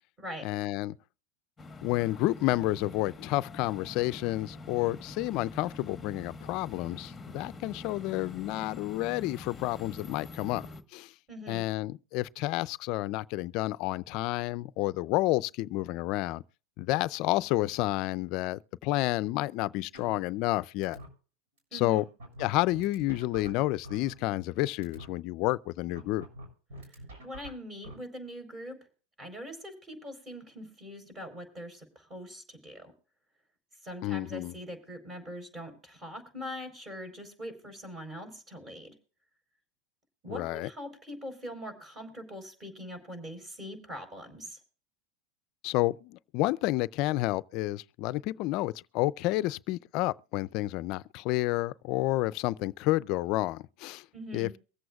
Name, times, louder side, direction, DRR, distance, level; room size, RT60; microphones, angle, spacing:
voice 1, 0.4-0.9 1.8-10.7 10.9-11.1 11.5-16.4 16.8-21.0 21.7-22.0 22.4-26.2 34.0-34.5 40.3-40.7 45.6-54.0 54.3-54.6, left 18 dB, 55° left, 0.4 m, -30 dB
sound 1, 1.6-10.8, left 2 dB, 10° left, 1.2 m, -46 dB
voice 2, 11.3-11.6 21.7-22.1 26.9-28.8 29.2-32.9 33.8-38.9 40.2-44.6 54.1-54.5, equal, 25° right, 4.4 m, -42 dB
sound 2, 19.9-20.5 20.8-21.1 21.6-21.7 21.9-24.5 24.8-25.1 25.9-27.9, right 1 dB, 80° right, 7.0 m, -46 dB
23.5 x 7.8 x 2.3 m
supercardioid pair, 130°, 0 cm